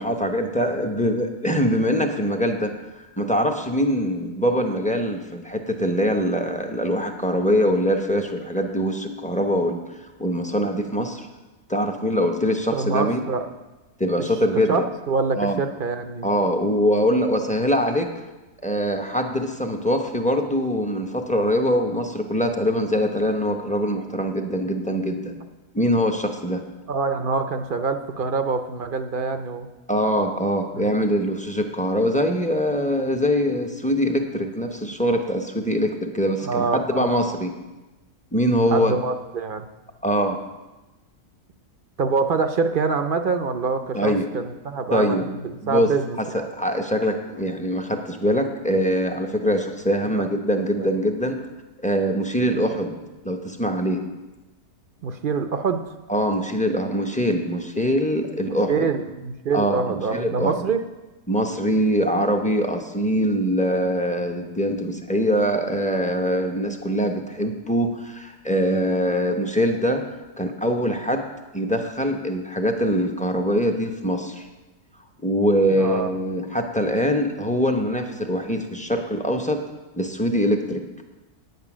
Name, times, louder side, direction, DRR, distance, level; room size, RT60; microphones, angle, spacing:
voice 1, 0.0-2.7 3.2-9.8 10.2-11.3 11.7-13.2 14.0-14.9 15.4-15.6 16.2-18.1 18.6-25.4 25.7-26.6 29.9-37.5 38.3-38.9 40.0-40.4 43.9-44.3 44.9-45.2 45.6-45.9 46.2-51.4 51.8-53.0 53.2-54.0 56.1-58.9 59.5-60.7 61.3-70.0 70.4-71.3 71.5-74.5 75.2-79.6 80.0-80.8, equal, 5° left, 4 dB, 0.7 m, -23 dB
voice 2, 12.7-13.5 14.7-16.3 26.9-29.7 30.7-30.9 36.4-37.2 38.7-39.7 42.0-45.4 45.7-46.5 50.1-50.2 50.8-50.9 55.0-55.8 58.7-60.8 75.7-76.1, right 4 dB, 50° right, 8 dB, 0.7 m, -25 dB
9.3 x 9.3 x 6.1 m, 1.1 s
omnidirectional pair, 1.4 m